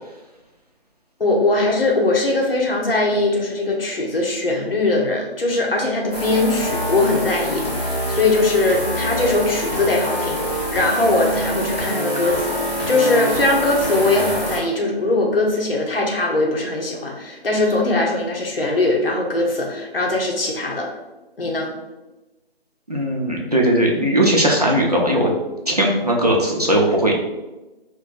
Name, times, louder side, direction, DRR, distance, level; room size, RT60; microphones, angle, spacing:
voice 1, 1.2-12.6 12.9-20.9 21.4-21.7, left 2 dB, 65° left, 0 dB, 0.8 m, -20 dB
sound 1, 6.1-14.6, equal, 15° left, 0.9 m, -25 dB
voice 2, 22.9-25.3 25.7-27.2, right 1 dB, 40° right, -2 dB, 0.4 m, -18 dB
2.5 x 2.2 x 3.9 m, 1.1 s
figure-of-eight pair, 175°, 31 cm